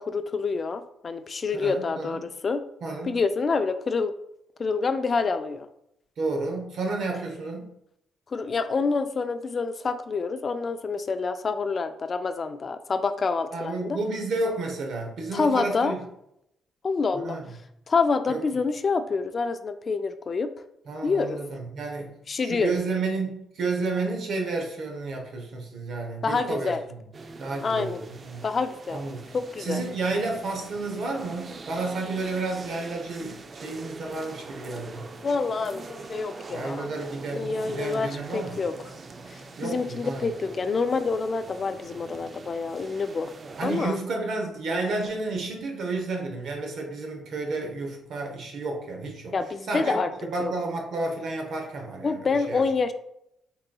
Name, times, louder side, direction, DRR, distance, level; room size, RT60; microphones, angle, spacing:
voice 1, 0.0-2.6 3.0-4.1 4.6-5.7 8.3-14.0 15.3-15.9 16.8-17.4 17.9-20.5 21.0-21.4 22.3-22.8 26.2-26.8 27.6-28.0 28.4-29.0 29.3-29.8 35.2-36.9 37.3-38.7 39.3-43.3 43.6-44.0 49.3-50.1 50.4-50.5 52.0-52.9, left 4 dB, 45° left, 10 dB, 0.3 m, -27 dB
voice 2, 1.5-2.2 2.8-3.1 6.2-7.7 13.5-16.0 17.1-17.5 18.3-18.4 20.9-27.0 27.4-28.5 28.9-29.3 29.6-35.1 36.5-38.6 39.6-40.3 43.6-49.4 49.7-52.6, right 3 dB, 70° right, 2 dB, 0.9 m, -31 dB
sound 1, 27.1-43.9, right 3 dB, 40° right, 0.4 m, -43 dB
3.9 x 3.7 x 2.3 m, 0.77 s
supercardioid pair, 70°, 0 cm